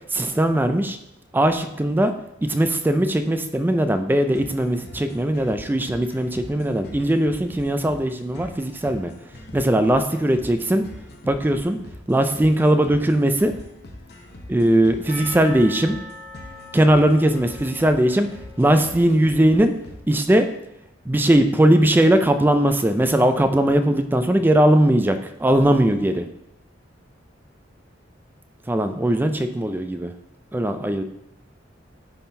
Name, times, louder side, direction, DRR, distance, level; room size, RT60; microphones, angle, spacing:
voice 1, 0.1-1.0 1.3-2.1 2.4-9.1 9.5-10.9 11.2-11.8 12.1-13.5 14.5-16.0 16.7-18.3 18.6-19.8 20.1-20.5 21.1-26.3 28.7-30.1 30.5-31.0, right 1 dB, 10° right, 8 dB, 0.3 m, -19 dB
sound 1, 4.3-20.3, left 1 dB, 55° left, 0.7 m, -43 dB
Percussion / Church bell, 15.1-19.9, left 1 dB, 65° right, 1.8 m, -42 dB
9.9 x 3.7 x 2.7 m, 0.84 s
head